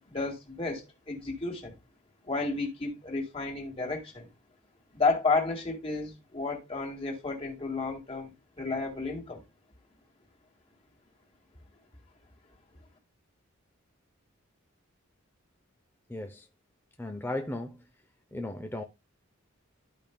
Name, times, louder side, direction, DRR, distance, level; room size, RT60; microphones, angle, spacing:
voice 1, 0.0-1.8 2.2-4.3 4.9-8.3 8.6-9.4, left 3 dB, 25° left, 2.0 m, -32 dB
voice 2, 16.1-16.5 17.0-17.8 18.3-18.8, left 1 dB, 10° left, 0.5 m, -36 dB
13.0 x 5.2 x 2.2 m
head